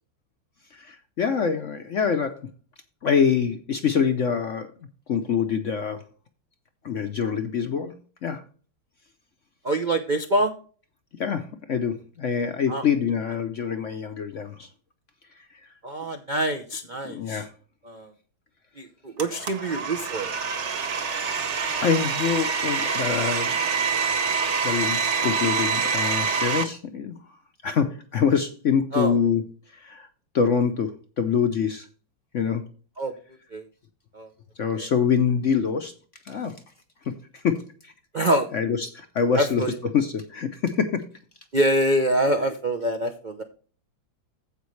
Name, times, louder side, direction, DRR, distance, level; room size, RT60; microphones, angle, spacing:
voice 1, 0.7-2.4 3.0-4.7 5.1-6.0 6.8-7.9 8.2-8.4 11.2-14.7 17.0-17.5 21.0-21.2 21.8-23.6 24.6-27.2 27.6-29.4 29.7-30.1 30.3-31.9 32.3-32.6 34.6-35.9 36.2-36.6 37.0-37.9 38.5-39.6 39.9-41.1, left 6 dB, 60° left, 8 dB, 0.8 m, -25 dB
voice 2, 9.6-10.5 12.7-12.8 15.8-17.4 17.8-18.1 18.8-20.3 28.9-29.2 33.0-33.1 33.5-33.6 34.1-34.3 34.7-34.9 38.1-38.5 39.4-39.7 41.5-43.4, right 1 dB, 70° right, 7 dB, 0.4 m, -25 dB
Domestic sounds home sounds, 19.2-26.6, right 5 dB, 50° right, 1.0 m, -26 dB
15.0 x 5.2 x 3.2 m, 0.39 s
omnidirectional pair, 2.1 m